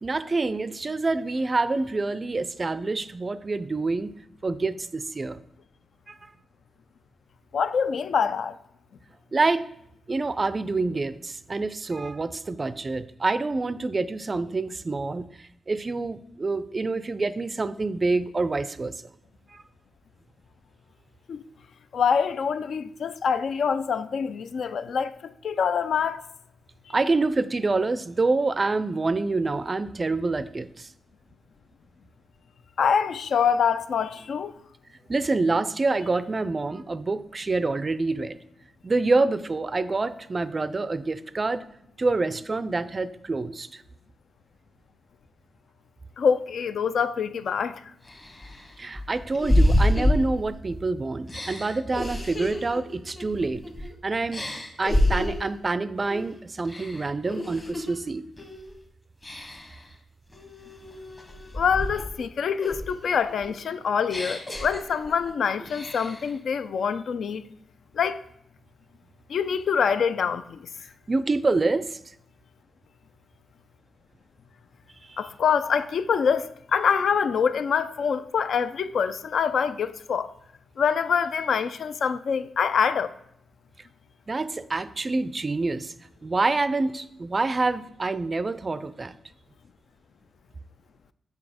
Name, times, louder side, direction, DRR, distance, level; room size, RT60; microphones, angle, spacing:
voice 1, 0.0-4.1 4.4-5.4 6.1-6.3 9.3-9.7 10.1-18.9 19.5-19.6 26.9-30.9 35.1-38.4 38.8-41.6 42.0-43.8 48.8-53.6 54.0-54.5 54.8-58.2 71.1-72.0 75.1-75.2 84.3-85.9 86.2-89.1, right 3 dB, 35° right, 0.3 m, -27 dB
voice 2, 7.5-8.6 21.3-21.4 21.9-26.2 32.8-34.5 46.2-47.8 61.5-67.4 67.9-68.2 69.3-70.7 75.2-80.3 80.8-83.1, left 6 dB, 70° left, 0.3 m, -25 dB
sound 1, 47.4-47.5 48.1-50.8 51.3-53.9 54.3-55.6 56.0-56.3 56.7-58.0 58.4-58.7 59.2-59.8 60.3-62.2 62.6-65.3 65.7-66.3, left 1 dB, 25° left, 1.1 m, -28 dB
6.0 x 4.1 x 4.9 m
cardioid pair, 90°, 0 cm